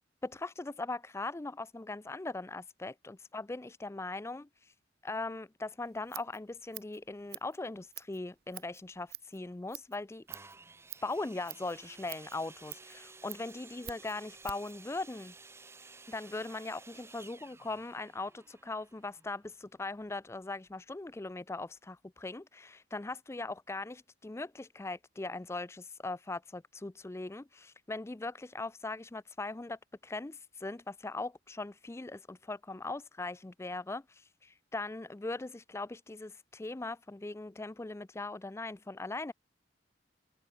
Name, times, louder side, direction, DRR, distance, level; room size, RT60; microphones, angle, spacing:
voice 1, 0.2-4.7 5.0-10.2 11.0-15.3 16.1-39.3, left 2 dB, 15° left, 0.4 m, -40 dB
Scissors, 5.8-14.8, right 14 dB, 60° right, 0.8 m, -49 dB
sound 1, 10.3-20.0 20.7-20.8, right 3 dB, 15° right, 0.9 m, -54 dB
head